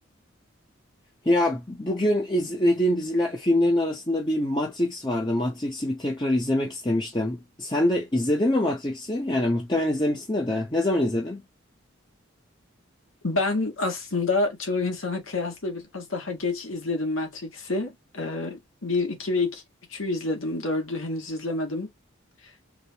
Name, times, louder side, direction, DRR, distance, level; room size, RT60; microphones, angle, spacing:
voice 1, 1.2-11.4, left 1 dB, 20° left, 0.9 m, -24 dB
voice 2, 13.2-19.6 19.9-21.9, left 3 dB, 75° left, 1.6 m, -28 dB
3.6 x 3.6 x 2.9 m
head